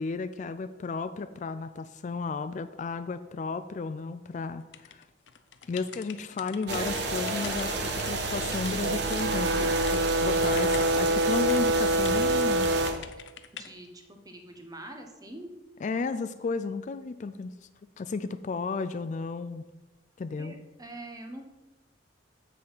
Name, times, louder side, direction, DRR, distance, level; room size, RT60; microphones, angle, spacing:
voice 1, 0.0-4.6 4.9-5.0 5.7-12.7 15.8-17.5 18.0-19.6 20.2-20.6, left 4 dB, 40° left, 11 dB, 0.3 m, -33 dB
sound 1, 4.7-10.0 10.3-12.5 12.9-13.7, left 9 dB, 85° left, 0.6 m, -45 dB
sound 2, 6.7-12.9, right 3 dB, 65° right, 1.2 m, -31 dB
Brass instrument, 8.8-13.1, right 1 dB, 90° right, 0.4 m, -26 dB
voice 2, 13.5-15.5 20.4-21.4, right 1 dB, 20° right, 4 dB, 1.0 m, -44 dB
7.6 x 6.6 x 5.5 m, 1.1 s
head